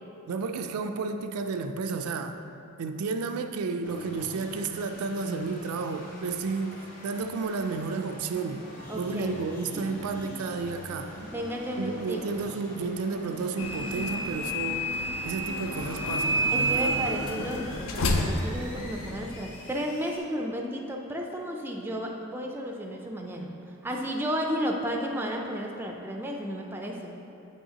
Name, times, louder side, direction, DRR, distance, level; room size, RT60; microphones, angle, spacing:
voice 1, 0.3-2.4 2.8-8.7 9.0-11.2 11.8-14.9 15.2-17.0, right 4 dB, 85° right, 7 dB, 0.4 m, -32 dB
sound 1, 3.8-20.2, equal, 35° left, 1.3 m, -43 dB
voice 2, 8.9-9.3 9.7-9.9 10.2-10.3 11.2-12.3 16.5-23.6 23.8-27.1, equal, 10° right, 1 dB, 0.3 m, -33 dB
sound 2, 13.6-19.4, equal, 70° left, 0.5 m, -29 dB
7.8 x 5.5 x 2.8 m, 2.9 s
head